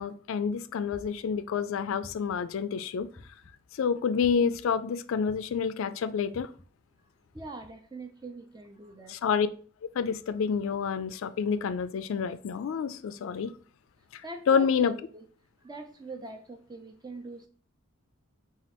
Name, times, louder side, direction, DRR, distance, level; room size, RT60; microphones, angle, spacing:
voice 1, 0.0-3.1 3.7-6.5 9.1-9.5 9.9-13.5 14.1-14.2 14.5-14.9, left 6 dB, 70° left, 0.3 m, -28 dB
sound 1, 0.9-1.4 2.0-2.5 3.2-3.6 4.2-4.6 5.3-5.7 6.3-6.6 7.4-7.7, left 1 dB, 10° left, 0.9 m, -50 dB
voice 2, 7.3-9.2 14.2-15.3 15.6-17.5, right 2 dB, 20° right, 0.5 m, -43 dB
4.2 x 2.4 x 4.2 m
head